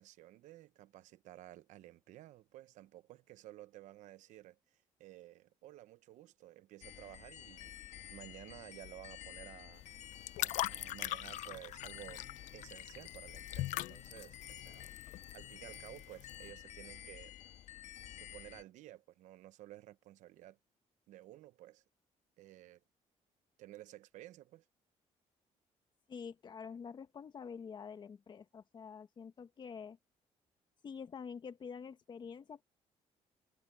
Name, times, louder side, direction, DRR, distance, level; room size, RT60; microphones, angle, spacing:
voice 1, 0.0-7.8 8.1-9.8 10.4-12.3 12.5-15.0 15.3-17.3 18.2-20.6 21.1-21.8 22.4-22.8 23.6-24.6, right 15 dB, 85° right, 0.9 m, -54 dB
sound 1, 6.8-18.6, left 12 dB, 70° left, 1.7 m, -51 dB
sound 2, 9.7-16.5, left 16 dB, 90° left, 0.6 m, -41 dB
voice 2, 26.1-30.0 30.8-32.6, left 6 dB, 40° left, 1.5 m, -47 dB
cardioid pair, 135°, 12 cm